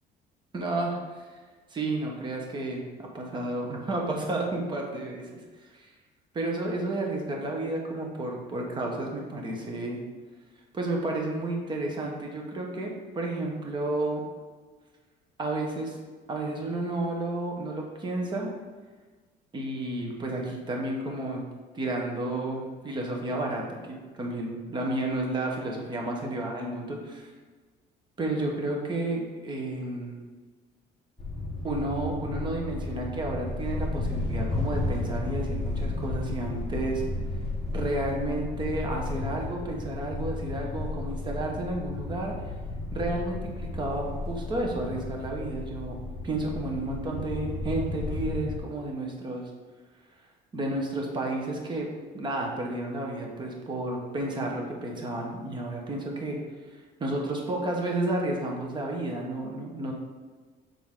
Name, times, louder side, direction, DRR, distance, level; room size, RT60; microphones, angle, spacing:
voice 1, 0.5-1.2 1.7-5.2 5.7-5.9 6.3-10.0 10.7-14.2 15.4-16.0 16.3-18.5 19.5-21.4 21.7-27.3 28.2-30.2 31.6-37.0 37.7-42.3 42.9-46.0 46.2-49.5 50.5-51.9 52.1-56.4 57.0-59.9, right 2 dB, 25° right, 0 dB, 1.0 m, -31 dB
sound 1, 31.2-48.6, left 2 dB, ahead, 1.6 m, -33 dB
6.8 x 3.7 x 3.7 m, 1.4 s
cardioid pair, 160°, 18 cm